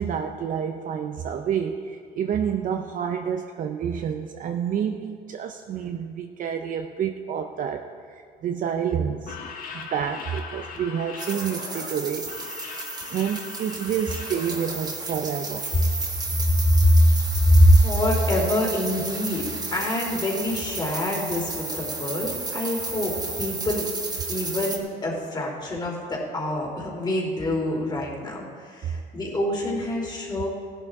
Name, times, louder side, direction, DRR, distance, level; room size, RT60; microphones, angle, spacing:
voice 1, 0.0-9.4 9.7-12.3 13.1-15.7 28.9-29.0, right 8 dB, 50° right, 5 dB, 0.6 m, -29 dB
sound 1, 9.1-14.8, left 5 dB, 55° left, 1.7 m, -39 dB
sound 2, 11.2-24.8, right 3 dB, 25° right, 1.6 m, -33 dB
voice 2, 17.4-19.4 19.7-23.9 24.3-30.5, equal, 25° left, -2 dB, 3.1 m, -24 dB
16.5 x 11.0 x 3.7 m, 2.2 s
cardioid pair, 110°, 17 cm